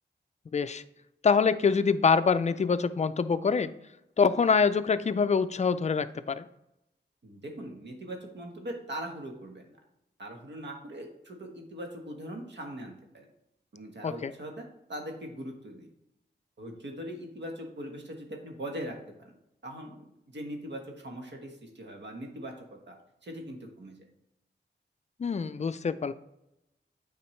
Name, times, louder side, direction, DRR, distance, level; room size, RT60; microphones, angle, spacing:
voice 1, 0.5-0.8 1.2-3.7 4.2-6.4 14.0-14.3 25.2-26.1, left 5 dB, 40° left, 12 dB, 0.4 m, -25 dB
voice 2, 7.2-9.8 10.2-13.3 13.7-15.9 16.6-19.3 19.6-22.9 23.2-24.0, right 1 dB, 75° right, 2 dB, 1.3 m, -41 dB
8.6 x 4.4 x 3.2 m, 0.84 s
wide cardioid pair, 80°, 18 cm